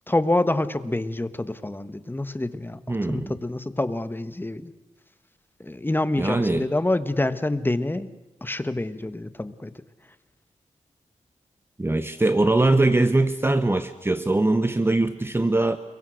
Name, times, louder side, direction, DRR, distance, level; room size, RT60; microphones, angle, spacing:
voice 1, 0.1-4.7 5.6-8.1 8.4-9.7, left 2 dB, 15° left, 12 dB, 1.3 m, -27 dB
voice 2, 2.9-3.3 6.2-6.7 11.8-15.8, right 2 dB, 20° right, 11 dB, 1.0 m, -21 dB
29.5 x 23.0 x 6.4 m, 1.1 s
wide cardioid pair, 80°, 13 cm